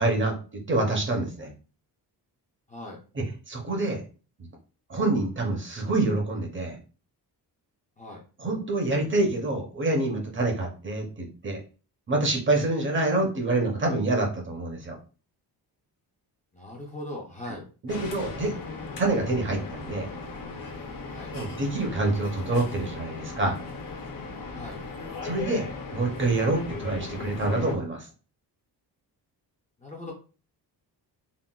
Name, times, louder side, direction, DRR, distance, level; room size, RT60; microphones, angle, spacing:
voice 1, 0.0-1.5 3.2-4.0 4.9-6.8 8.4-11.6 12.1-15.0 17.8-18.6 19.0-20.1 21.3-23.6 25.2-28.1, right 2 dB, 30° right, 2 dB, 0.6 m, -26 dB
voice 2, 2.7-3.0 8.0-8.2 16.5-17.6 21.1-21.3 24.5-24.8 29.8-30.1, left 1 dB, 20° left, -2 dB, 0.4 m, -39 dB
sound 1, 17.9-27.8, left 3 dB, 55° left, 0.7 m, -37 dB
3.7 x 2.1 x 2.2 m, 0.36 s
wide cardioid pair, 165°, 40 cm